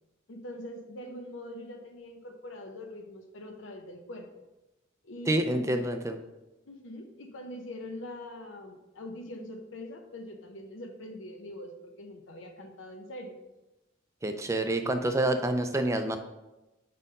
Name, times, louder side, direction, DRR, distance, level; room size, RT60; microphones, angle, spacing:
voice 1, 0.3-4.3 5.0-5.8 6.7-13.3, left 1 dB, 70° left, 3 dB, 0.8 m, -43 dB
voice 2, 5.3-6.2 14.2-16.2, right 1 dB, 15° right, 7 dB, 0.4 m, -27 dB
5.0 x 4.3 x 5.4 m, 1.0 s
head